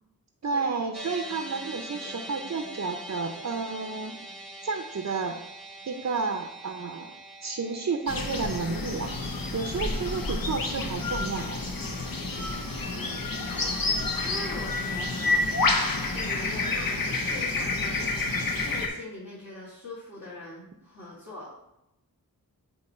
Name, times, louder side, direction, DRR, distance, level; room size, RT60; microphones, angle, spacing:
voice 1, 0.4-4.2 4.6-5.4 5.9-7.2 7.4-9.1 9.5-11.7, right 4 dB, 50° right, 4 dB, 0.6 m, -31 dB
sound 1, 0.9-13.4, right 1 dB, ahead, 0.9 m, -45 dB
voice 2, 2.0-2.3 12.8-13.1 13.6-13.8 14.2-15.4 16.1-18.3 18.6-21.6, left 2 dB, 50° left, -9 dB, 2.0 m, -42 dB
sound 2, 8.1-18.9, left 3 dB, 70° left, 1.0 m, -29 dB
8.4 x 2.9 x 4.2 m, 0.87 s
wide cardioid pair, 65°, 36 cm